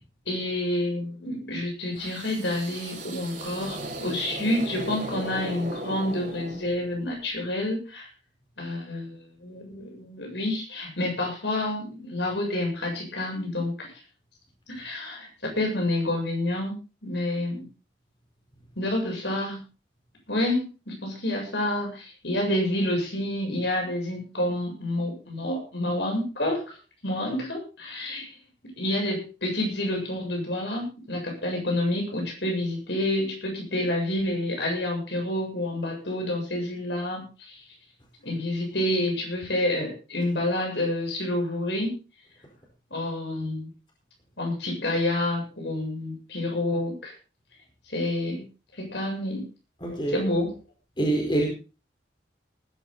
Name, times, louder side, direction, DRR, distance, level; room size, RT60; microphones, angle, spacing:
voice 1, 0.3-8.1 8.6-13.9 14.7-17.7 18.8-19.6 20.3-26.8 27.0-28.3 28.7-37.6 38.2-41.9 42.9-43.7 44.4-47.1 47.9-48.4 48.7-49.4 50.1-50.5, left 1 dB, 65° left, 1 dB, 7.7 m, -28 dB
sound 1, 2.0-7.0, right 1 dB, 40° right, 5.1 m, -37 dB
voice 2, 49.8-50.2 51.0-51.5, right 2 dB, 25° left, 0 dB, 4.6 m, -25 dB
19.5 x 11.5 x 4.1 m, 0.33 s
head